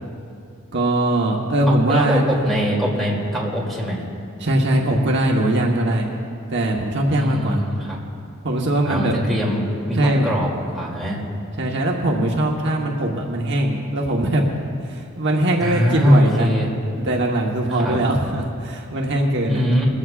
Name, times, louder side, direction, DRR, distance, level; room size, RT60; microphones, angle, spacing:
voice 1, 0.7-2.2 4.4-6.1 6.5-7.6 8.4-9.1 9.9-10.3 11.6-14.5 14.8-16.5 16.9-19.6, right 1 dB, 55° right, -1 dB, 1.2 m, -21 dB
voice 2, 1.9-4.0 7.1-8.0 8.8-11.2 15.6-16.7 17.7-18.0 19.5-19.8, equal, ahead, -4 dB, 2.7 m, -22 dB
22.0 x 15.0 x 2.4 m, 2.4 s
head